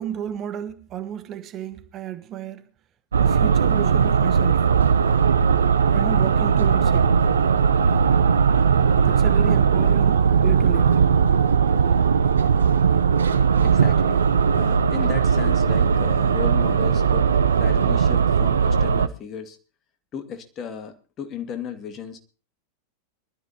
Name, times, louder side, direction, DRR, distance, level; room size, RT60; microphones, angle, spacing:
voice 1, 0.0-2.6 3.2-4.7 5.9-7.2 9.0-10.9, right 10 dB, 30° right, 1.1 m, -32 dB
sound 1, 3.1-19.1, right 6 dB, 70° right, 0.8 m, -18 dB
voice 2, 13.6-14.2 14.5-19.6 20.1-22.2, left 7 dB, 30° left, 2.2 m, -35 dB
23.0 x 13.0 x 2.9 m
figure-of-eight pair, 90°, 0 cm